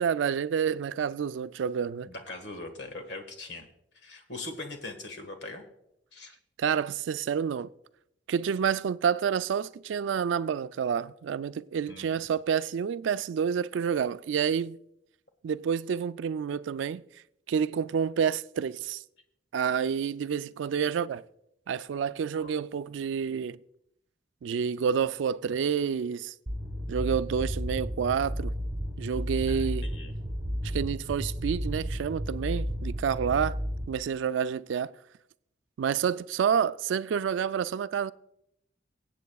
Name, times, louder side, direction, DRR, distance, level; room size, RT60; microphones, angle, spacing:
voice 1, 0.0-2.1 6.6-7.7 8.3-14.8 15.4-17.0 17.5-19.0 19.5-21.2 21.7-23.6 24.4-26.3 26.9-28.5 29.0-29.9 30.6-33.6 33.9-34.9 35.8-38.1, right 7 dB, 85° right, 0.3 m, -29 dB
voice 2, 2.1-3.6 3.9-5.6 6.1-6.4 11.9-12.2 22.3-22.5 29.5-30.1, left 2 dB, 70° left, 1.6 m, -41 dB
sound 1, 26.5-33.8, equal, 20° right, 1.4 m, -33 dB
23.5 x 8.3 x 2.3 m
head